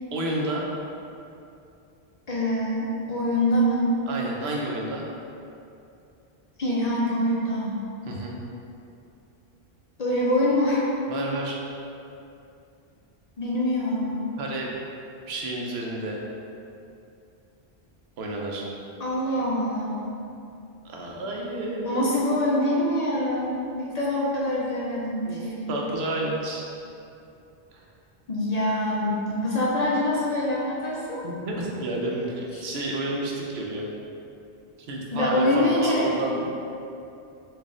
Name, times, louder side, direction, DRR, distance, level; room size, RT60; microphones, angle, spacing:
voice 1, 0.1-0.7 4.1-5.1 8.0-8.4 11.1-11.6 14.4-14.7 15.3-16.2 18.2-18.7 20.8-22.1 25.3-25.4 25.7-26.7 27.7-27.9 31.2-33.8 34.9-36.5, right 1 dB, 80° right, -2 dB, 0.9 m, -30 dB
voice 2, 2.3-3.9 6.6-7.8 10.0-10.8 13.4-14.2 19.0-20.0 21.8-25.8 28.3-31.2 32.5-32.6 35.1-36.1, left 1 dB, 55° left, -5 dB, 0.5 m, -25 dB
4.0 x 2.5 x 3.6 m, 2.7 s
omnidirectional pair, 1.0 m